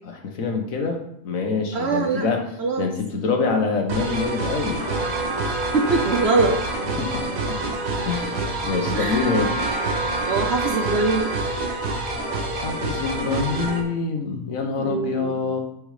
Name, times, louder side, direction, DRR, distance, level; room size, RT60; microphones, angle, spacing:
voice 1, 0.0-2.4 2.8-4.8 7.0-7.2 7.5-7.6 8.0-9.5 12.5-15.6, left 4 dB, 60° left, 3 dB, 1.5 m, -25 dB
voice 2, 1.7-2.3 2.6-2.9 5.4-6.6 8.9-9.5 10.3-11.3 14.8-15.4, right 3 dB, 50° right, 3 dB, 1.0 m, -23 dB
sound 1, 3.9-13.8, right 2 dB, 80° right, 1.8 m, -28 dB
Trumpet, 4.7-11.6, right 2 dB, 30° right, 2.6 m, -31 dB
9.8 x 5.3 x 5.0 m, 0.77 s
omnidirectional pair, 1.7 m